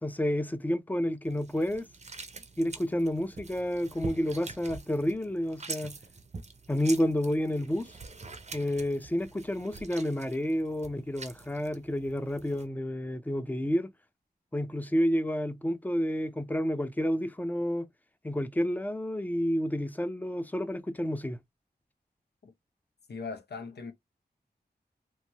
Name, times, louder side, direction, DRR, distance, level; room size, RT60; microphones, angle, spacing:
voice 1, 0.0-1.9 2.6-6.0 6.7-7.9 8.5-13.9 14.5-17.9 18.2-21.4, equal, 10° left, 0.4 m, -30 dB
sound 1, 1.3-12.7, right 4 dB, 40° right, 0.6 m, -45 dB
voice 2, 23.1-23.9, left 4 dB, 80° left, 0.7 m, -39 dB
3.1 x 2.1 x 2.7 m
wide cardioid pair, 90°, 17 cm